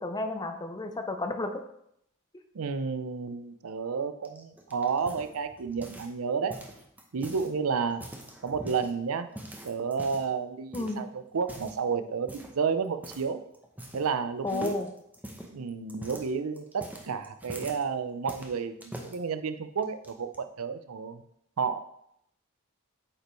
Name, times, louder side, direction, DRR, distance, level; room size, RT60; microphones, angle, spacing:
voice 1, 0.0-1.6 10.7-11.1 14.4-14.9, left 2 dB, 20° left, 7 dB, 0.5 m, -32 dB
voice 2, 2.5-6.6 7.1-8.1 8.4-9.3 9.6-13.4 13.9-14.7 15.5-21.2 21.6-21.8, right 5 dB, 80° right, 10 dB, 0.5 m, -31 dB
Walking on concrete floor, 4.2-6.2 6.5-7.5 7.9-8.9 9.3-10.3 10.7-11.0 11.4-11.8 12.3-12.6 13.0-13.3 13.5-14.2 14.5-17.8 18.3-19.2 19.8-20.4, right 1 dB, 10° right, 0.8 m, -44 dB
8.5 x 5.3 x 3.1 m, 0.75 s
head